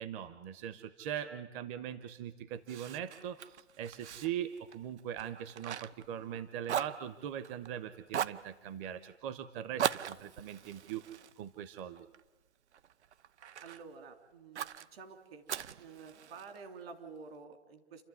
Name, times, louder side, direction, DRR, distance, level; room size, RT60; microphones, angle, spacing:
voice 1, 0.0-11.0 11.4-12.1, right 10 dB, 20° right, 12 dB, 0.7 m, -41 dB
Fire, 2.7-6.4 6.6-7.7 8.1-8.5 9.8-12.2 12.7-13.8 14.6-14.9 15.5-16.6, right 9 dB, 75° right, 1.0 m, -39 dB
voice 2, 13.6-15.4 15.8-18.0, right 5 dB, 60° right, 6 dB, 3.6 m, -50 dB
29.0 x 13.0 x 9.6 m, 1.2 s
hypercardioid pair, 140°, 35 cm